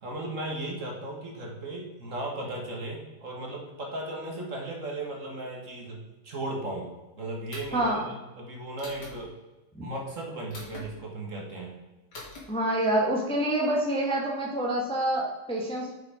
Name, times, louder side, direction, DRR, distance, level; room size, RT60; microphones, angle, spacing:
voice 1, 0.0-6.9 7.2-9.3 9.8-11.7, right 1 dB, 40° right, 0 dB, 1.8 m, -36 dB
sound 1, 7.5-7.9 8.8-9.2 10.5-10.9 12.1-12.4, left 2 dB, 55° left, 2.6 m, -43 dB
voice 2, 7.7-8.1 9.7-9.9 12.5-15.9, right 1 dB, 5° left, -2 dB, 1.2 m, -27 dB
6.8 x 5.8 x 4.9 m, 1.1 s
omnidirectional pair, 2.2 m